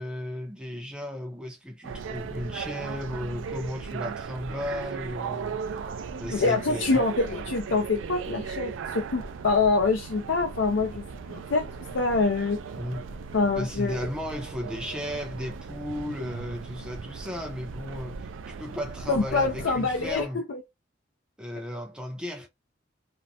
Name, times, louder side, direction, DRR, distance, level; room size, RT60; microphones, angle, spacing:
voice 1, 0.0-5.6 6.2-7.0 12.8-13.1 13.6-20.4 21.4-22.5, left 1 dB, 5° right, 0.6 m, -35 dB
sound 1, 1.8-20.3, right 5 dB, 85° right, 0.3 m, -38 dB
sound 2, 5.4-13.4, equal, 50° left, 1.1 m, -53 dB
voice 2, 6.3-11.0 11.3-11.6 11.9-12.6 13.3-14.0 19.1-20.6, left 3 dB, 75° left, 0.5 m, -25 dB
2.6 x 2.1 x 2.7 m
head